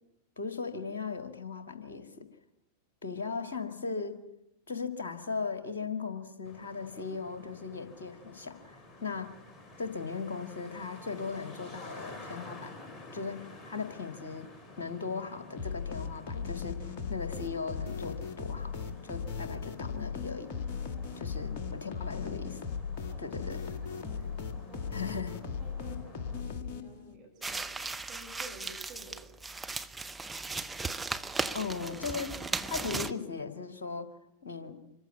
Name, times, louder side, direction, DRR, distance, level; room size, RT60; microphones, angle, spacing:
voice 1, 0.4-2.3 3.0-4.2 4.7-9.3 9.8-12.7 13.1-14.5 14.8-18.7 19.0-20.5 21.2-22.6 23.2-23.6 24.9-25.4 31.5-32.4 32.7-34.2 34.4-34.8, left 4 dB, 65° left, 8 dB, 1.9 m, -38 dB
Traffic noise roadway noise, 6.4-26.4, left 2 dB, 20° left, 3.6 m, -51 dB
sound 1, 15.6-27.2, left 6 dB, 45° left, 2.0 m, -38 dB
voice 2, 20.8-22.0 23.1-29.6, right 2 dB, 35° right, 2 dB, 4.6 m, -54 dB
sound 2, 27.4-33.1, right 3 dB, 10° right, 0.9 m, -36 dB
25.5 x 15.0 x 9.5 m, 0.84 s
figure-of-eight pair, 90°, 0 cm